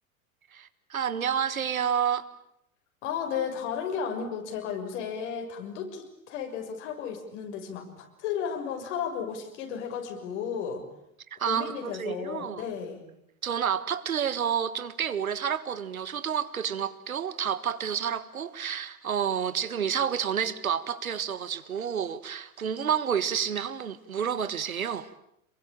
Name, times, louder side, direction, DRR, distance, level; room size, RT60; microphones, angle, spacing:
voice 1, 0.5-2.3 11.3-12.6 13.4-25.1, right 8 dB, 80° right, 1.7 m, -29 dB
voice 2, 3.0-10.8 11.5-13.0, left 7 dB, 55° left, 6.5 m, -34 dB
27.0 x 23.0 x 8.9 m
figure-of-eight pair, 90°, 42 cm